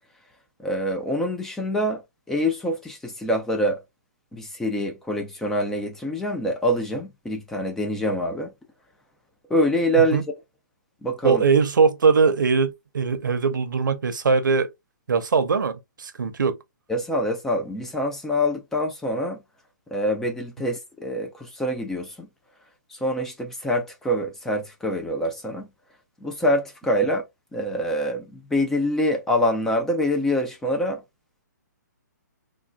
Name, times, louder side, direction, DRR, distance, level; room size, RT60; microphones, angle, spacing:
voice 1, 0.6-2.0 2.3-3.8 4.3-8.5 9.5-10.3 11.0-11.4 16.9-19.4 19.9-22.3 22.9-25.7 26.2-27.2 27.5-31.0, equal, 5° left, 0.4 m, -25 dB
voice 2, 11.2-14.7 15.1-16.6, right 5 dB, 80° right, 0.7 m, -21 dB
3.7 x 2.3 x 2.2 m
hypercardioid pair, 160°, 10 cm